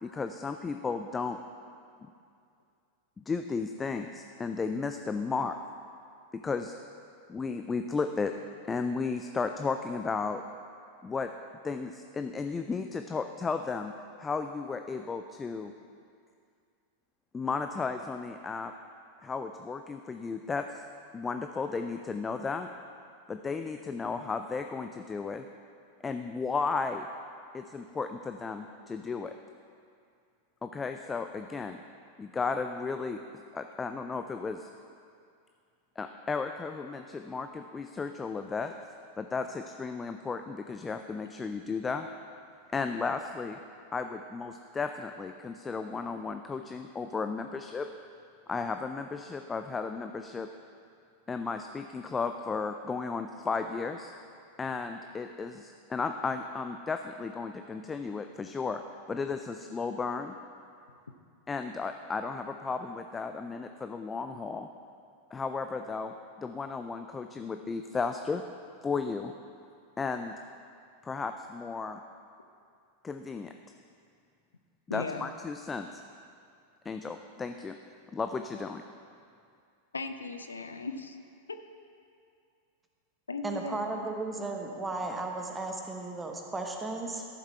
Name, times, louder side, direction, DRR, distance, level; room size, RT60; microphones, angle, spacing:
voice 1, 0.0-1.4 3.3-5.5 6.3-6.8 7.3-8.3 8.7-10.4 11.0-11.3 11.6-13.9 14.2-15.7 17.3-18.7 19.2-20.8 21.1-22.7 23.3-25.5 26.0-27.1 27.5-29.3 30.6-31.8 32.2-33.2 33.5-34.7 36.0-38.7 39.2-42.1 42.7-43.6 43.9-47.9 48.5-50.5 51.3-54.1 54.6-58.8 59.1-60.3 61.5-64.7 65.3-68.4 68.8-69.3 70.0-70.3 71.0-72.0 73.0-73.5 74.9-76.0 76.9-77.8 78.1-78.8, left 4 dB, 15° left, 7 dB, 0.4 m, -34 dB
voice 2, 74.9-75.3 79.9-81.2 81.5-81.6 83.3-84.1, left 3 dB, 75° left, 7 dB, 0.5 m, -37 dB
voice 3, 83.4-87.3, right 2 dB, 10° right, 2 dB, 1.1 m, -35 dB
13.0 x 7.3 x 4.3 m, 2.4 s
figure-of-eight pair, 90°, 0 cm